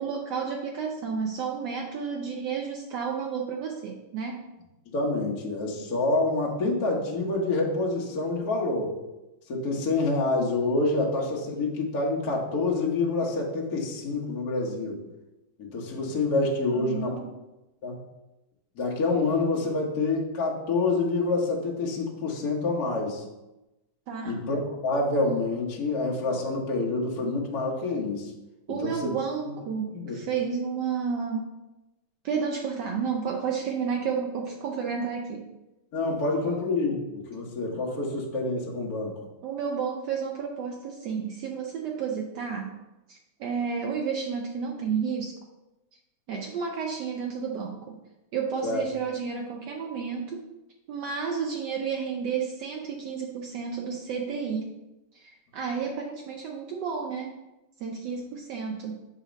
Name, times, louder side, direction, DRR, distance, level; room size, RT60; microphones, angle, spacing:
voice 1, 0.0-4.4 16.7-17.3 24.1-24.4 28.7-31.5 32.2-35.5 36.2-36.5 39.4-42.7 43.1-45.4 46.3-48.0 48.3-50.5 50.9-54.8 55.1-57.3 57.8-59.0, right 6 dB, 80° right, 1 dB, 0.9 m, -31 dB
voice 2, 4.9-9.0 9.5-15.0 15.6-17.2 17.8-18.0 18.7-23.2 24.3-28.3 28.8-29.1 29.9-30.2 35.9-39.1 48.6-48.8, left 3 dB, 50° left, -3 dB, 1.4 m, -27 dB
6.9 x 2.8 x 5.1 m, 0.99 s
omnidirectional pair, 2.4 m